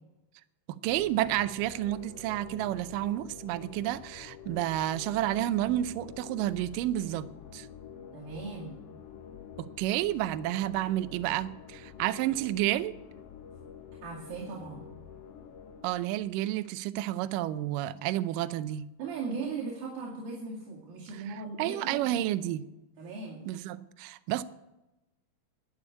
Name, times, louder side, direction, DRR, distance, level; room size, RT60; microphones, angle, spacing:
voice 1, 0.8-7.3 7.5-7.7 9.8-12.9 15.8-18.9 21.3-22.6 23.5-24.4, right 14 dB, 85° right, 13 dB, 1.9 m, -30 dB
sound 1, 0.9-16.4, left 7 dB, 75° left, 1.4 m, -48 dB
voice 2, 8.1-8.8 14.0-14.9 19.0-22.4 23.0-23.4, right 4 dB, 65° right, -6 dB, 4.1 m, -38 dB
12.0 x 8.6 x 9.5 m, 1.0 s
omnidirectional pair, 4.5 m